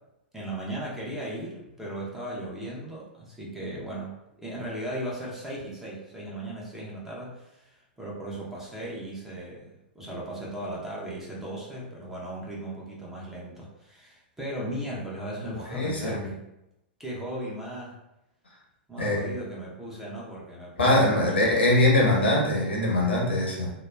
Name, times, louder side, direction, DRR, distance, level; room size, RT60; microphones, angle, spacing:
voice 1, 0.3-16.4 17.0-17.9 18.9-21.2, right 1 dB, 5° right, -5 dB, 0.7 m, -37 dB
voice 2, 15.5-16.3 19.0-19.4 20.8-23.7, left 1 dB, 85° left, -4 dB, 0.9 m, -23 dB
2.9 x 2.0 x 2.3 m, 0.88 s
hypercardioid pair, 105°, 6 cm